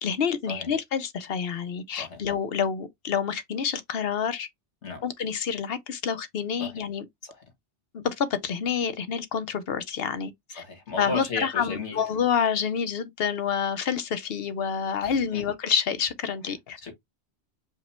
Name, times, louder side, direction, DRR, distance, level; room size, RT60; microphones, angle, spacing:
voice 1, 0.0-4.5 5.0-7.0 7.9-10.6 11.0-16.8, left 7 dB, 60° left, 0.9 m, -28 dB
voice 2, 10.6-12.0 15.0-15.4 16.8-16.9, left 3 dB, 80° left, 2.0 m, -34 dB
5.0 x 2.1 x 4.3 m
omnidirectional pair, 1.2 m